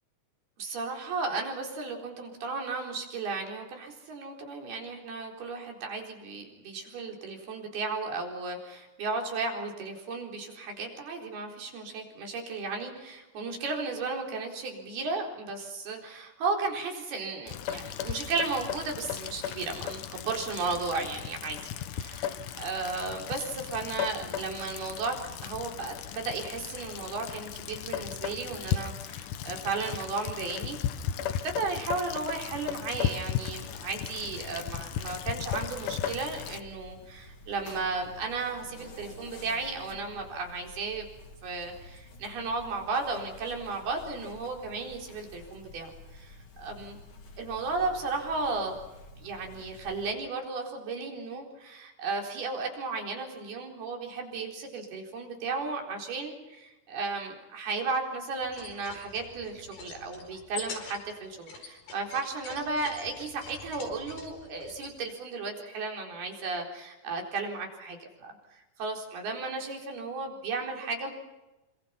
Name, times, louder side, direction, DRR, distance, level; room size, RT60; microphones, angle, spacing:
voice 1, 0.6-21.6 21.9-30.8 31.3-41.1 41.4-47.0 47.4-48.8 49.2-71.1, right 3 dB, 90° right, 2 dB, 6.2 m, -34 dB
Rain, 17.5-36.6, left 9 dB, 65° left, 2.4 m, -36 dB
sound 1, 33.4-50.1, left 3 dB, 35° left, 3.0 m, -49 dB
sound 2, 58.4-64.9, left 4 dB, 85° left, 6.7 m, -45 dB
28.0 x 26.0 x 5.8 m, 1.0 s
omnidirectional pair, 4.3 m